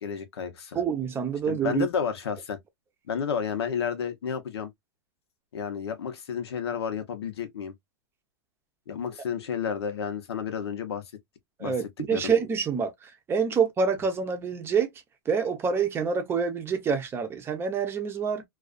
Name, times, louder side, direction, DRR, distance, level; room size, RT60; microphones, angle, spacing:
voice 1, 0.0-0.8 1.5-2.6 3.1-4.7 5.5-7.7 8.9-11.0 11.6-11.7 12.1-12.3, left 7 dB, 90° left, 0.8 m, -31 dB
voice 2, 0.7-1.9 11.6-14.9 15.3-18.4, right 6 dB, 20° right, 0.6 m, -27 dB
2.4 x 2.3 x 2.3 m
hypercardioid pair, 135°, 13 cm